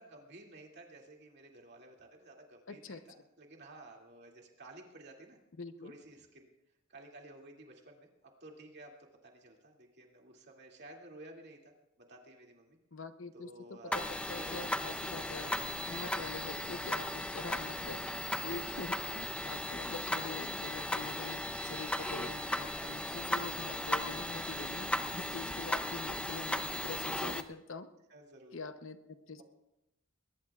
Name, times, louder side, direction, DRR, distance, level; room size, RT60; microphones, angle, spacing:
voice 1, 0.0-3.0 3.4-5.4 5.8-6.5 6.9-12.8 13.3-14.6 15.4-15.7 19.1-19.2 20.9-21.4 28.1-28.6, right 2 dB, 55° right, 0 dB, 2.5 m, -54 dB
voice 2, 2.7-3.0 5.6-5.9 12.9-15.5 15.9-18.0 18.3-27.9 28.5-29.4, left 3 dB, 65° left, 9 dB, 0.9 m, -44 dB
sound 1, 13.9-27.4, left 1 dB, 5° left, 0.5 m, -36 dB
22.0 x 20.0 x 2.4 m, 0.91 s
head